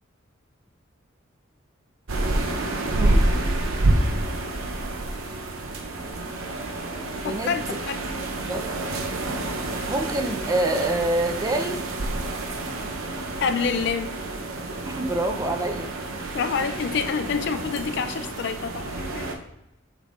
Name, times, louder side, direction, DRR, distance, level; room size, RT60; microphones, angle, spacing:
sound 1, 2.1-19.4, right 2 dB, 90° right, 0.7 m, -28 dB
voice 1, 2.9-3.4 7.2-7.8 8.5-8.8 9.9-11.8 14.8-15.9, right 1 dB, 20° right, 4 dB, 0.5 m, -26 dB
voice 2, 7.2-8.0 13.4-14.2 16.3-19.3, left 6 dB, 55° left, 9 dB, 0.4 m, -27 dB
7.3 x 5.3 x 2.5 m, 0.87 s
head